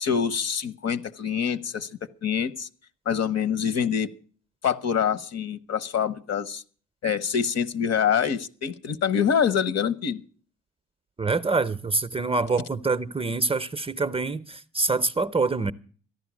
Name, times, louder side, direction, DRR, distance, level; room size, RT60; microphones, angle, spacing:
voice 1, 0.0-2.7 3.0-4.1 4.6-6.6 7.0-10.2, left 7 dB, 60° left, 1.1 m, -25 dB
voice 2, 11.2-15.7, right 3 dB, 20° right, 0.6 m, -25 dB
14.0 x 11.0 x 6.2 m
cardioid pair, 90°, 30 cm